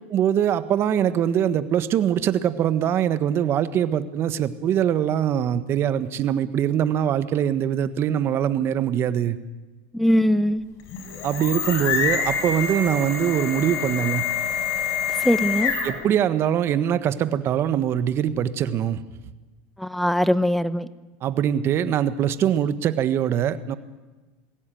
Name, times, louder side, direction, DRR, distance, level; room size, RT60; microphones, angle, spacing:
voice 1, 0.1-9.4 11.2-14.2 15.8-19.0 21.2-23.8, right 9 dB, 40° right, 13 dB, 1.3 m, -23 dB
voice 2, 9.9-10.6 15.2-15.7 19.8-20.9, equal, ahead, 15 dB, 0.9 m, -21 dB
sound 1, 10.8-16.1, left 7 dB, 50° left, 5.8 m, -26 dB
21.0 x 16.5 x 9.2 m, 1.2 s
supercardioid pair, 125°, 6 cm